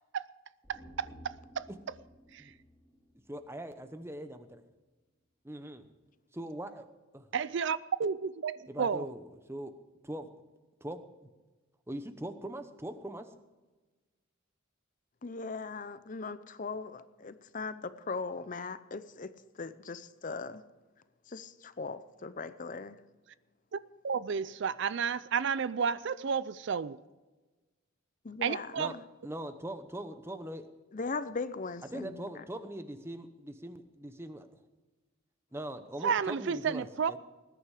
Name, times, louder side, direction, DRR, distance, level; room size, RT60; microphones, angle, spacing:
sound 1, 0.6-4.0 4.3-4.4, equal, 5° left, 2.9 m, -55 dB
voice 1, 0.7-1.7 2.3-2.5 7.3-9.1 23.7-23.8 24.0-27.0 28.4-28.9 36.0-37.1, right 6 dB, 55° right, 0.4 m, -32 dB
voice 2, 3.3-4.6 5.4-5.9 6.3-6.9 7.1-7.3 8.7-9.7 10.1-10.3 10.8-11.0 11.9-13.3 28.8-28.9 29.2-30.7 31.9-34.5 35.5-37.2, right 1 dB, 10° right, 0.8 m, -41 dB
voice 3, 15.2-20.6 21.3-23.0 28.2-29.0 30.9-32.4, left 4 dB, 35° left, 0.6 m, -39 dB
19.5 x 10.0 x 4.9 m
head